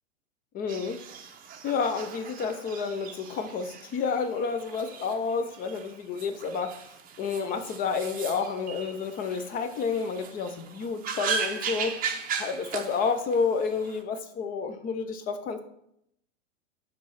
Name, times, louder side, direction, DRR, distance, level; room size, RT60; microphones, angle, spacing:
voice 1, 0.5-1.0 1.6-6.8 7.2-12.0 12.4-15.6, left 5 dB, 20° left, 10 dB, 0.5 m, -30 dB
sound 1, 0.7-14.0, right 6 dB, 20° right, 0.7 m, -38 dB
5.9 x 3.3 x 5.5 m, 0.74 s
figure-of-eight pair, 100°, 39 cm